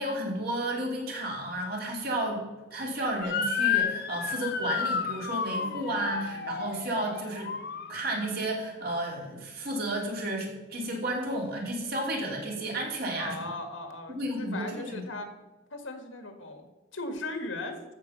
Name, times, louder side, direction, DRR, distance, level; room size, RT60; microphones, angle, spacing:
voice 1, 0.0-7.5 7.9-13.4 14.2-15.0, right 1 dB, 55° right, -1 dB, 2.9 m, -32 dB
Motor vehicle (road) / Siren, 3.2-8.5, left 6 dB, 55° left, 1.0 m, -31 dB
voice 2, 13.2-15.3 15.7-16.7 16.9-17.8, left 2 dB, 90° left, 5 dB, 1.9 m, -37 dB
14.0 x 5.2 x 6.9 m, 1.1 s
head